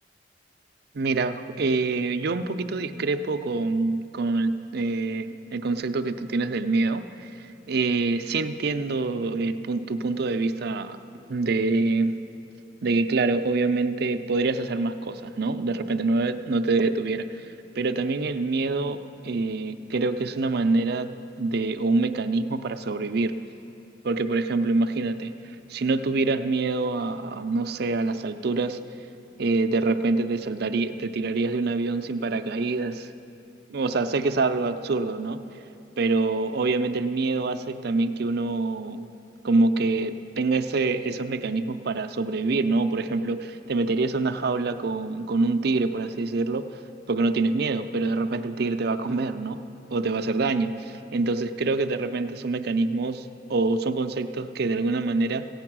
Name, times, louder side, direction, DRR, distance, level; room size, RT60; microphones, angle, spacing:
voice 1, 0.9-7.0 7.7-11.0 11.3-12.1 12.8-17.5 17.8-21.1 21.4-23.3 24.0-25.3 25.7-28.8 29.4-33.1 33.7-35.4 36.0-39.1 39.4-46.7 47.1-49.6 49.9-55.5, right 3 dB, 60° right, 9 dB, 0.5 m, -25 dB
15.5 x 8.7 x 6.1 m, 2.8 s
head